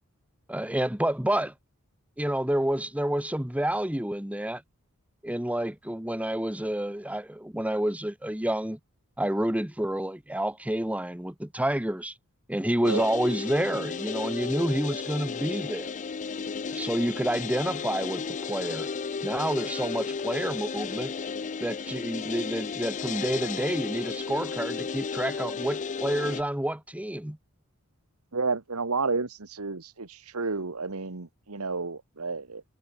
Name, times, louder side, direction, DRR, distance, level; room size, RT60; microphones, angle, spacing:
voice 1, 0.5-1.5 2.2-4.6 5.2-8.8 9.2-12.1 12.5-15.9 16.7-18.9 19.2-21.1 21.6-27.4, right 1 dB, 5° right, 1.2 m, -29 dB
sound 1, 12.8-26.4, left 5 dB, 35° left, 0.5 m, -34 dB
voice 2, 28.3-32.6, right 4 dB, 80° right, 1.5 m, -31 dB
head